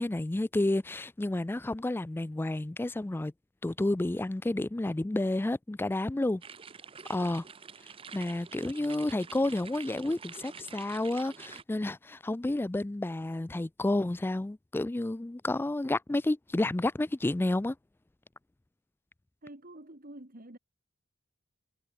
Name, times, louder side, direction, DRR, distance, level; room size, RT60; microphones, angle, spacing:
voice 1, 0.0-3.3 3.6-6.4 7.1-7.4 8.1-17.8, left 2 dB, 10° left, 0.3 m, -30 dB
sound 1, 6.4-11.6, right 6 dB, 25° right, 0.7 m, -47 dB
voice 2, 19.4-20.6, right 1 dB, 45° right, 2.6 m, -48 dB
head